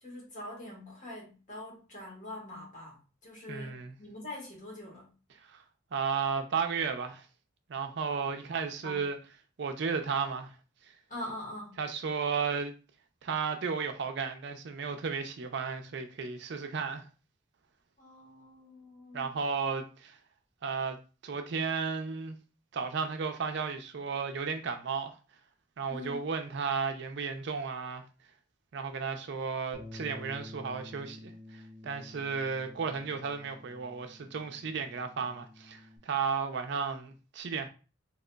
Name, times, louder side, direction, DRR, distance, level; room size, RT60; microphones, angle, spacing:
voice 1, 0.0-5.1 8.8-9.0 11.1-11.8 18.0-19.3 25.9-26.2, left 1 dB, 40° left, 1.4 m, -44 dB
voice 2, 3.5-3.9 5.5-5.6 5.9-7.3 7.7-9.2 9.6-10.5 11.8-12.7 13.2-17.1 19.1-20.2 20.6-21.0 21.2-22.4 22.7-25.1 25.8-28.0 28.7-37.7, right 5 dB, 60° right, 0.4 m, -34 dB
Bass guitar, 29.7-36.0, left 1 dB, 5° right, 0.7 m, -50 dB
3.8 x 2.9 x 2.2 m
head